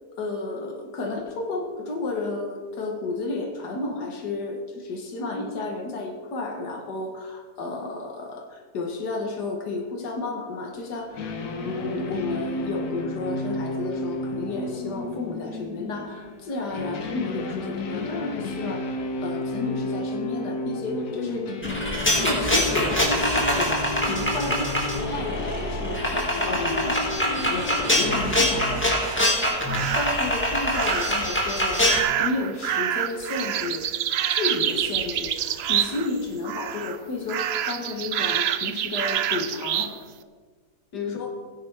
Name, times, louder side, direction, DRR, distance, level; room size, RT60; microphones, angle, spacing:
voice 1, 0.2-11.3 11.6-21.5 22.2-29.1 29.9-33.9 34.3-40.0 40.9-41.3, left 3 dB, 85° left, 2 dB, 1.9 m, -32 dB
sound 1, 11.1-28.4, left 2 dB, 70° left, 1.6 m, -32 dB
sound 2, 21.6-32.0, equal, 5° left, 2.1 m, -24 dB
sound 3, 29.7-30.2 30.7-31.3 31.8-36.2 36.4-37.0 37.3-39.9, right 10 dB, 80° right, 0.5 m, -27 dB
17.0 x 9.7 x 3.5 m, 1.4 s
omnidirectional pair, 1.7 m